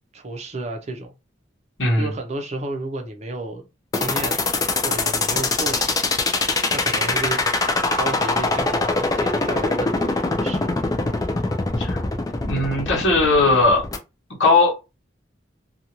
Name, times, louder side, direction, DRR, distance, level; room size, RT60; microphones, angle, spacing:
voice 1, 0.1-1.1 2.0-3.7 3.9-4.4 4.8-6.0 6.7-7.4 7.9-10.7, right 2 dB, 35° right, 0.6 m, -32 dB
sound 1, 3.9-14.0, left 3 dB, 20° left, 0.4 m, -22 dB
voice 2, 12.4-13.8 14.4-15.0, left 3 dB, 75° left, 1.0 m, -18 dB
2.6 x 2.3 x 2.9 m
head